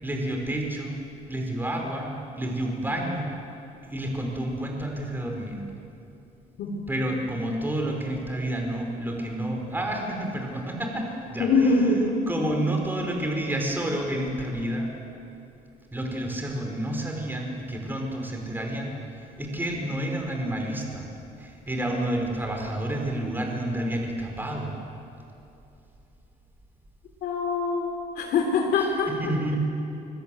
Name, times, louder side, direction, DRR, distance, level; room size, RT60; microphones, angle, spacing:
voice 1, 0.0-1.0 1.3-3.3 3.9-5.6 6.9-11.7 12.3-14.9 15.9-21.1 21.4-24.7 29.1-29.6, right 1 dB, 10° right, 1 dB, 4.9 m, -30 dB
voice 2, 11.4-12.2 27.2-29.1, left 3 dB, 70° left, 1 dB, 3.4 m, -24 dB
25.0 x 23.0 x 7.8 m, 2.8 s
cardioid pair, 110°, 17 cm